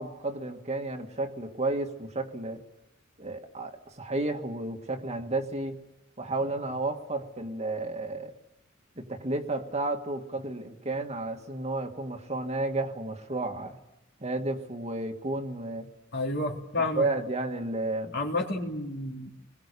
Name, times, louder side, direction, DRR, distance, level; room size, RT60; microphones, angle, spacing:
voice 1, 0.0-2.6 3.2-5.8 6.2-8.3 9.0-13.8 14.2-15.9 17.0-18.2, right 2 dB, 35° right, 4 dB, 2.0 m, -32 dB
voice 2, 16.1-17.1 18.1-19.3, left 2 dB, 60° left, 1 dB, 3.5 m, -30 dB
29.5 x 21.5 x 7.0 m, 0.92 s
head